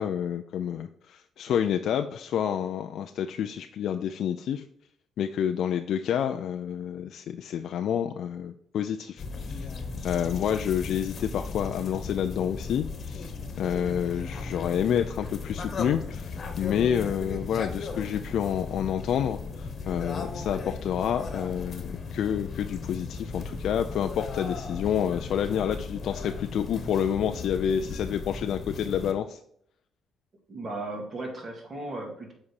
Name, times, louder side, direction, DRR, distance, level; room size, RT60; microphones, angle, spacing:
voice 1, 0.0-4.6 5.2-9.2 9.5-9.7 10.0-13.3 13.6-29.4, left 9 dB, 70° left, 7 dB, 0.4 m, -29 dB
sound 1, 9.2-29.1, left 4 dB, 50° left, 1.2 m, -36 dB
voice 2, 30.5-32.3, right 2 dB, 45° right, 1 dB, 2.4 m, -36 dB
7.3 x 4.2 x 4.7 m, 0.68 s
cardioid pair, 90°, 0 cm